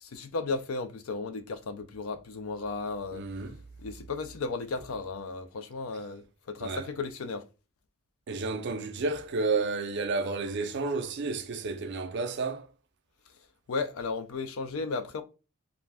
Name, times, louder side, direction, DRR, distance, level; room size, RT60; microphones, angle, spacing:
voice 1, 0.0-3.2 3.8-7.4 13.7-15.2, left 4 dB, 70° left, 0.5 m, -34 dB
voice 2, 3.1-3.6 6.6-6.9 8.3-12.7, right 3 dB, 50° right, 0.4 m, -31 dB
2.5 x 2.1 x 3.3 m
head